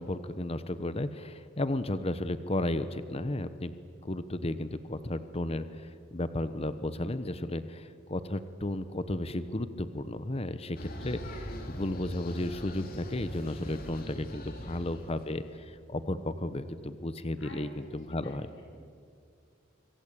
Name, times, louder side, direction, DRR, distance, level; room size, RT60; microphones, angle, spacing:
voice 1, 0.0-3.7 4.0-18.5, left 1 dB, 30° left, 12 dB, 1.0 m, -34 dB
sound 1, 10.8-15.7, left 1 dB, 45° left, 3.2 m, -41 dB
voice 2, 14.5-15.4 17.4-18.8, left 1 dB, 70° left, 2 dB, 6.3 m, -53 dB
25.5 x 24.5 x 8.4 m, 2.3 s
head